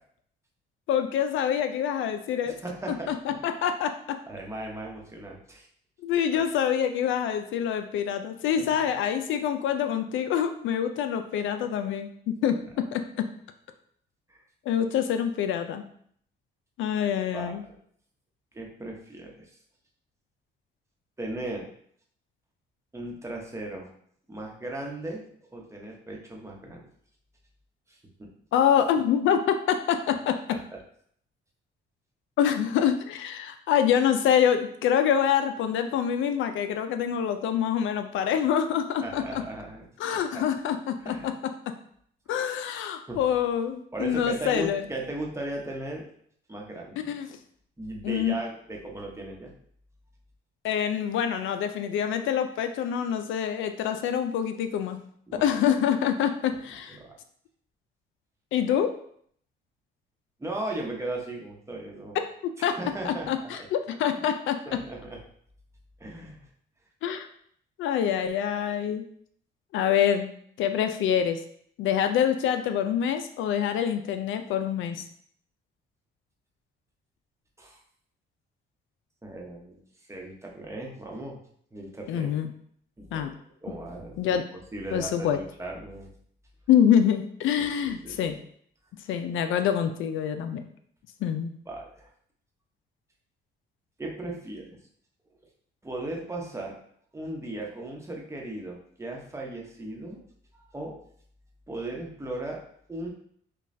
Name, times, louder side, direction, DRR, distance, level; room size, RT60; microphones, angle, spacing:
voice 1, 0.9-2.5 3.1-3.2 3.4-3.9 6.0-12.6 12.9-13.0 14.7-15.8 16.8-17.6 28.5-30.4 32.4-39.4 40.0-41.3 42.3-44.8 47.0-47.3 48.0-48.3 50.6-55.0 55.4-57.0 58.5-58.9 62.6-62.8 63.0-64.6 67.0-67.3 67.8-69.0 69.7-70.3 70.6-71.4 71.8-75.0 82.1-82.5 83.1-83.3 84.2-84.4 84.9-85.4 86.7-88.4 89.1-90.6 91.2-91.5, left 9 dB, 80° left, 8 dB, 0.4 m, -26 dB
voice 2, 2.4-3.1 4.3-5.7 6.3-6.4 8.6-8.7 14.3-14.4 17.3-17.7 18.5-19.5 21.2-21.7 22.9-23.9 24.3-25.3 25.5-26.9 27.9-28.0 30.5-30.6 39.0-40.4 41.0-41.3 43.1-43.2 43.9-46.0 46.5-47.0 47.8-49.5 55.3-55.7 56.5-56.6 56.9-57.1 60.4-62.2 62.6-63.7 64.0-64.2 64.7-65.2 66.0-66.5 77.6-77.8 79.2-81.4 81.7-82.3 83.0-84.2 84.5-86.1 87.6-88.2 91.7-92.1 94.0-94.8 95.8-96.8 97.1-100.2 100.7-101.0 101.7-102.6 102.9-103.1, right 2 dB, 15° right, -1 dB, 0.9 m, -37 dB
5.1 x 2.3 x 2.6 m, 0.63 s
cardioid pair, 90°, 20 cm